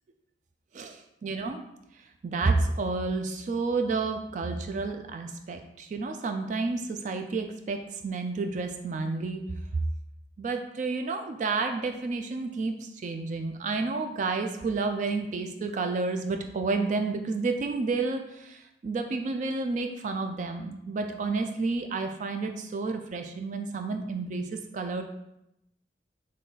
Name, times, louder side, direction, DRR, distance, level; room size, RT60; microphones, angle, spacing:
voice 1, 0.7-1.6 2.0-9.4 10.4-25.0, right 3 dB, 45° right, 5 dB, 0.3 m, -30 dB
3.8 x 3.2 x 3.9 m, 0.84 s
head